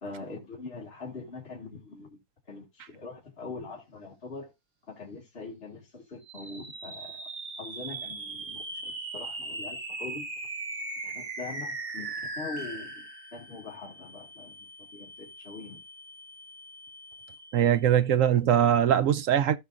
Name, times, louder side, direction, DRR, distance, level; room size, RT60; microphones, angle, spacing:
voice 1, 0.0-2.2 2.5-4.5 4.9-7.3 7.6-10.3 11.0-12.1 12.4-15.8, left 3 dB, 40° left, 2.3 m, -42 dB
sound 1, 6.2-17.7, right 2 dB, 40° right, 1.9 m, -40 dB
voice 2, 17.5-19.6, right 10 dB, 65° right, 1.0 m, -22 dB
15.5 x 5.5 x 2.5 m
omnidirectional pair, 1.6 m